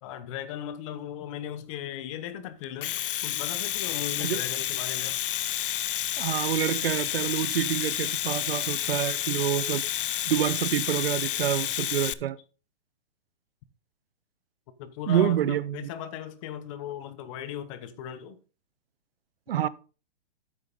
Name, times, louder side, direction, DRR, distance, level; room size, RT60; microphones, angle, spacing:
voice 1, 0.0-5.2 14.8-18.4, left 10 dB, 30° left, 0.9 m, -37 dB
Domestic sounds home sounds, 2.6-12.1, left 12 dB, 60° left, 0.6 m, -30 dB
voice 2, 6.2-9.8 10.3-12.4 15.1-15.9 19.5-19.7, right 11 dB, 70° right, 0.7 m, -27 dB
9.0 x 6.6 x 3.9 m
hypercardioid pair, 150°, 31 cm